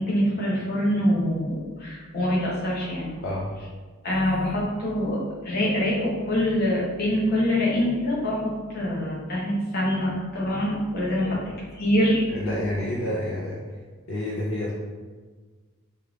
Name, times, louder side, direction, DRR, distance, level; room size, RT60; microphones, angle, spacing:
voice 1, 0.0-3.1 4.0-11.4 11.8-12.2, equal, 50° left, -6 dB, 1.0 m, -25 dB
voice 2, 12.3-13.6 14.1-14.7, left 1 dB, 70° left, -5 dB, 0.5 m, -29 dB
3.5 x 2.4 x 3.2 m, 1.4 s
head